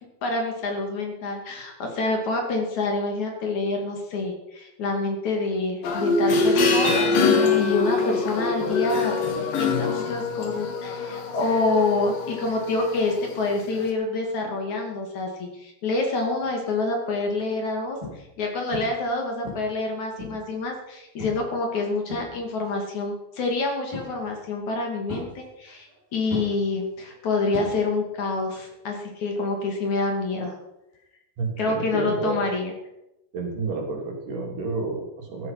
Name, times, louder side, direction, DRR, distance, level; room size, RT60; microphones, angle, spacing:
voice 1, 0.2-7.1 7.5-9.2 9.5-30.6 31.6-32.7, left 3 dB, 55° left, 2 dB, 3.7 m, -27 dB
sound 1, 5.8-13.3 13.8-13.9, left 4 dB, 70° left, 3.6 m, -24 dB
sound 2, 16.4-16.7 17.3-17.4 18.0-18.4 18.7-19.1 19.4-20.6 21.2-21.5 21.9-22.7 23.9-24.4 25.1-26.0 26.3-28.2 28.4-28.9 30.9-31.0, left 2 dB, 5° right, 7.9 m, -38 dB
voice 2, 31.4-32.4 33.3-35.5, right 3 dB, 60° right, 0 dB, 4.6 m, -30 dB
14.5 x 13.0 x 5.9 m, 0.90 s
omnidirectional pair, 4.2 m